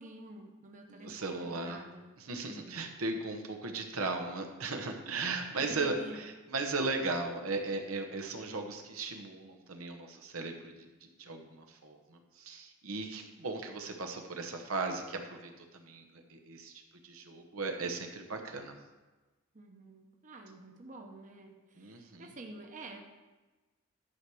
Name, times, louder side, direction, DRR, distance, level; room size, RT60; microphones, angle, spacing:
voice 1, 0.0-2.1 2.4-2.9 5.6-6.2 19.5-23.0, right 2 dB, 40° right, 2 dB, 1.0 m, -49 dB
voice 2, 0.9-1.8 2.2-18.7 21.8-22.3, right 3 dB, 85° right, 4 dB, 1.1 m, -37 dB
11.5 x 4.8 x 6.1 m, 1.2 s
head